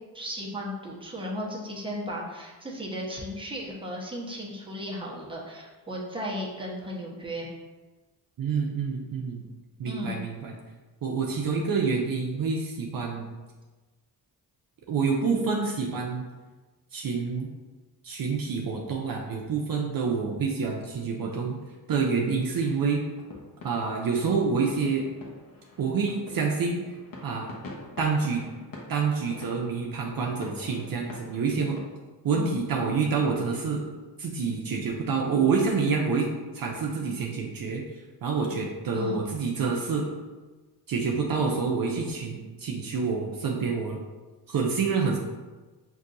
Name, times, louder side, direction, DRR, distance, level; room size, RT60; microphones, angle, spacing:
voice 1, 0.1-7.5 9.8-10.2 32.3-32.6 38.9-39.2, equal, 15° right, -4 dB, 1.0 m, -35 dB
voice 2, 8.4-9.4 9.8-10.5 11.0-13.3 14.9-16.3 16.9-17.5 18.0-21.6 21.9-23.0 23.6-25.0 25.8-27.0 27.2-27.5 28.0-28.4 28.9-31.8 32.2-33.8 34.2-40.1 40.9-44.0 44.5-45.2, right 5 dB, 60° right, 0 dB, 0.6 m, -27 dB
sound 1, 22.3-31.8, left 2 dB, 55° left, 1.1 m, -46 dB
5.9 x 2.6 x 2.6 m, 1.3 s
cardioid pair, 70°, 39 cm